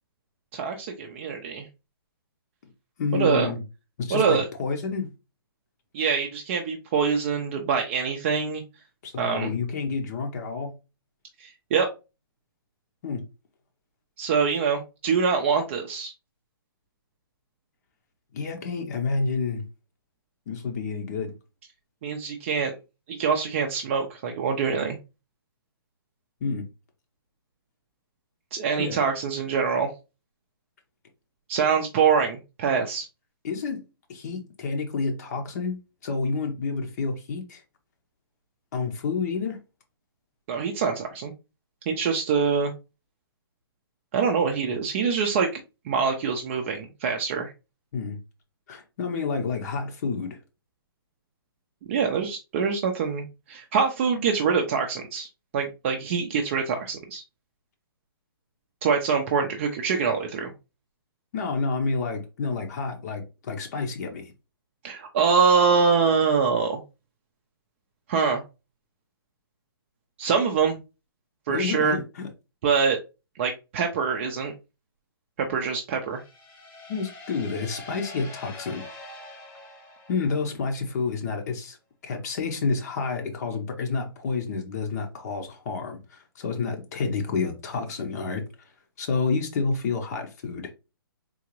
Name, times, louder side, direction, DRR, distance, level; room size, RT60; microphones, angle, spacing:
voice 1, 0.5-1.7 3.1-3.5 4.1-4.5 5.9-8.6 9.2-9.5 11.4-11.9 14.2-16.1 22.0-22.7 23.1-25.0 28.5-29.9 31.5-33.1 40.5-41.3 41.9-42.7 44.1-47.5 51.9-55.3 55.5-57.2 58.8-60.5 64.8-66.8 68.1-68.4 70.2-70.8 71.5-72.0 72.6-73.0 73.4-74.5 75.5-76.2, right 6 dB, 30° right, 0.5 m, -24 dB
voice 2, 3.0-3.6 4.0-5.1 9.0-10.7 13.0-13.2 18.3-19.6 20.5-21.3 26.4-26.7 28.8-29.0 33.4-33.8 34.1-37.6 38.7-39.6 47.9-48.2 48.7-50.4 61.3-64.3 71.5-72.3 76.9-78.8 80.1-81.8 82.0-90.7, left 4 dB, 45° left, 0.7 m, -29 dB
sound 1, 76.1-80.9, left 2 dB, 15° left, 0.8 m, -44 dB
3.8 x 2.4 x 3.0 m
hypercardioid pair, 155°, 13 cm